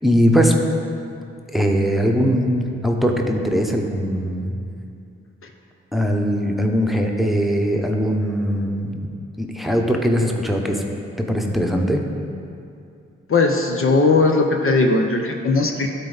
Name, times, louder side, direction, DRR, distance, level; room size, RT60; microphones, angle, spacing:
voice 1, 0.0-0.6 1.5-4.6 5.9-8.9 9.4-10.8 11.3-12.0, equal, ahead, 2 dB, 1.0 m, -20 dB
voice 2, 13.3-15.9, left 3 dB, 50° left, 3 dB, 0.8 m, -18 dB
12.0 x 4.1 x 4.1 m, 2.5 s
supercardioid pair, 45°, 29 cm